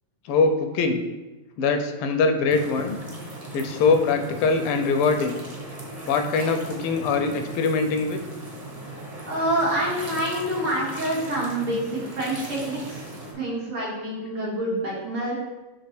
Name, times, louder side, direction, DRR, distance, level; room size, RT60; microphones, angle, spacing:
voice 1, 0.2-1.0 1.6-3.0 3.5-5.4 6.1-8.2, left 4 dB, 85° left, 7 dB, 1.6 m, -22 dB
sound 1, 2.5-13.3, right 1 dB, 25° right, 0.9 m, -38 dB
voice 2, 9.2-13.0 13.3-15.3, right 1 dB, 80° right, -7 dB, 3.0 m, -27 dB
5.7 x 3.4 x 5.8 m, 1.1 s
omnidirectional pair, 2.4 m